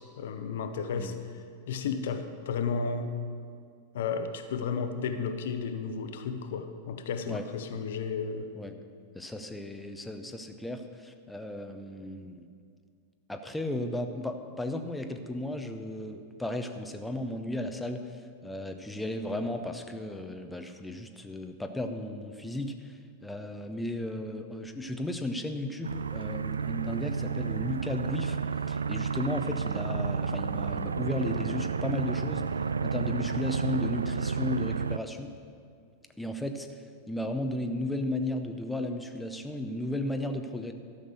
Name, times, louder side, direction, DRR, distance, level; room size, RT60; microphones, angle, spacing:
voice 1, 0.0-1.3 1.7-3.1 3.9-8.5, left 5 dB, 60° left, 8 dB, 0.7 m, -33 dB
voice 2, 9.1-12.5 13.3-18.2 18.4-28.4 28.7-32.5 32.8-35.3 36.2-36.8 37.1-40.7, left 1 dB, 5° left, 5 dB, 0.7 m, -35 dB
sound 1, 25.8-35.0, right 5 dB, 75° right, 0.3 m, -31 dB
12.5 x 6.5 x 6.9 m, 2.2 s
figure-of-eight pair, 90°, 0 cm